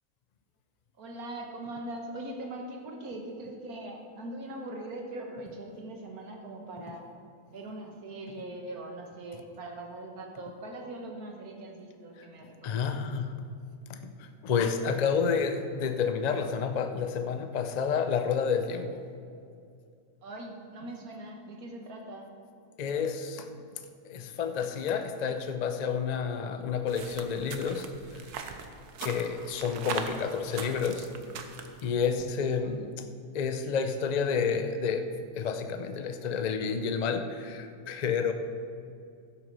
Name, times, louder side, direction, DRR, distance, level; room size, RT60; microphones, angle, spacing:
voice 1, 1.0-7.1 7.5-13.0 20.2-22.3, right 1 dB, 70° right, 2 dB, 1.8 m, -41 dB
voice 2, 12.6-13.4 13.9-19.0 22.8-23.5 24.1-27.9 29.0-31.1 31.8-33.0 33.3-38.3, left 6 dB, 50° left, 7 dB, 0.5 m, -30 dB
sound 1, 26.9-31.9, right 6 dB, 90° right, 1.3 m, -41 dB
12.0 x 7.9 x 5.5 m, 2.4 s
omnidirectional pair, 1.6 m